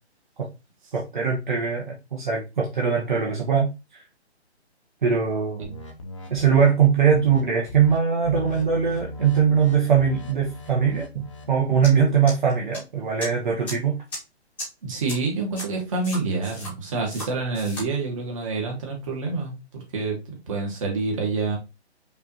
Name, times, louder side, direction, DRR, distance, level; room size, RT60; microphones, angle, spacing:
voice 1, 0.9-4.0 5.0-5.8 6.3-14.0, right 7 dB, 45° right, -2 dB, 0.9 m, -21 dB
sound 1, 5.6-6.7 7.1-7.4 7.7-8.0 8.2-11.5, left 3 dB, 30° left, 0.6 m, -39 dB
sound 2, 11.8-11.9 12.3-12.8 13.2-13.3 13.6-13.7 14.1-14.2 14.6-14.7 15.1-15.2 15.5-15.6 16.0-16.7 17.1-17.3 17.5-17.8, left 1 dB, 5° left, 0.9 m, -34 dB
voice 2, 14.8-19.5 19.9-20.2 20.5-21.6, right 3 dB, 30° right, 1 dB, 1.2 m, -27 dB
5.3 x 2.5 x 2.8 m, 0.26 s
hypercardioid pair, 160°, 34 cm